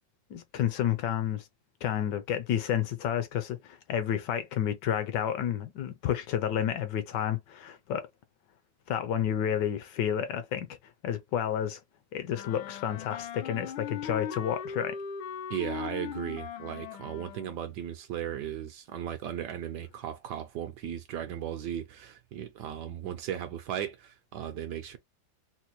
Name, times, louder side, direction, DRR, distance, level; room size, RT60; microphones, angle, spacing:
voice 1, 0.3-1.5 1.8-8.1 8.9-10.8 11.0-11.8 12.1-15.0, left 9 dB, 75° left, 1.1 m, -30 dB
Wind instrument woodwind instrument, 12.3-17.6, left 7 dB, 90° left, 1.4 m, -39 dB
voice 2, 15.5-25.0, right 10 dB, 75° right, 1.0 m, -36 dB
4.1 x 2.1 x 2.8 m
omnidirectional pair, 2.1 m